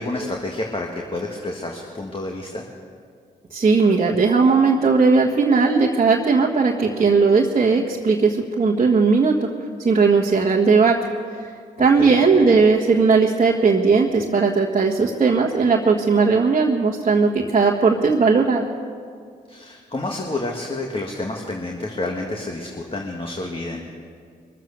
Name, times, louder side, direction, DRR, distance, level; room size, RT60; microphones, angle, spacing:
voice 1, 0.0-2.6 11.8-12.2 19.5-23.8, left 2 dB, 30° left, 0 dB, 1.7 m, -29 dB
voice 2, 3.5-9.5 9.8-11.0 11.4-11.5 11.8-18.6, right 4 dB, 35° right, -4 dB, 1.5 m, -17 dB
22.5 x 7.6 x 6.7 m, 2.1 s
supercardioid pair, 45°, 18 cm